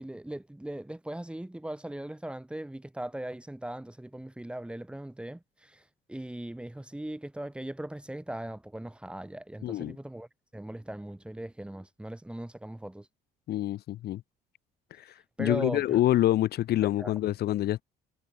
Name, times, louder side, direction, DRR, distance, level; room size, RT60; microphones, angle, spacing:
voice 1, 0.0-5.8 6.1-10.3 10.5-13.1 15.4-16.0 17.0-17.1, right 1 dB, 5° right, 3.2 m, -39 dB
voice 2, 9.6-10.0 13.5-14.2 14.9-17.8, left 14 dB, 70° left, 4.3 m, -27 dB
cardioid pair, 110°, 17 cm